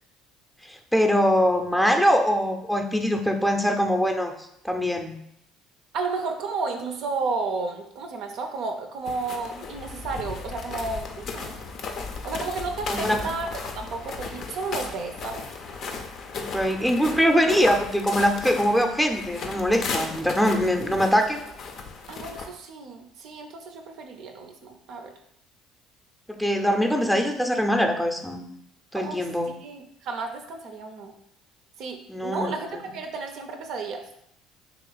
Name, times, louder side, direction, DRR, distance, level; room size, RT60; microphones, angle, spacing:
voice 1, 0.6-4.3 4.6-5.1 12.9-13.2 16.4-21.4 26.3-28.4 28.9-29.5 32.1-32.5, equal, 5° left, 4 dB, 0.6 m, -23 dB
voice 2, 5.9-11.7 12.2-13.5 13.7-15.4 22.1-25.1 28.9-31.1 31.8-34.0, right 4 dB, 60° right, 4 dB, 0.5 m, -32 dB
sound 1, 9.1-22.5, left 4 dB, 55° left, 0.5 m, -35 dB
3.0 x 2.8 x 3.9 m, 0.74 s
hypercardioid pair, 60°, 0 cm